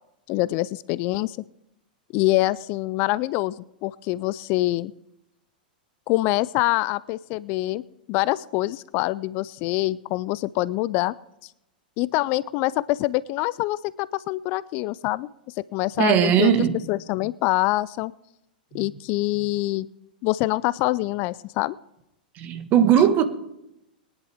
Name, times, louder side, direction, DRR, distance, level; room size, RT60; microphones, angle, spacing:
voice 1, 0.3-1.4 2.1-4.9 6.1-7.8 8.1-11.1 12.0-15.3 15.7-16.5 16.9-18.1 18.7-19.9 20.2-21.8, left 18 dB, 40° left, 0.4 m, -25 dB
voice 2, 16.0-16.8 18.7-18.8 22.3-23.2, right 9 dB, 35° right, 1.5 m, -19 dB
22.0 x 10.5 x 3.5 m
figure-of-eight pair, 100°, 5 cm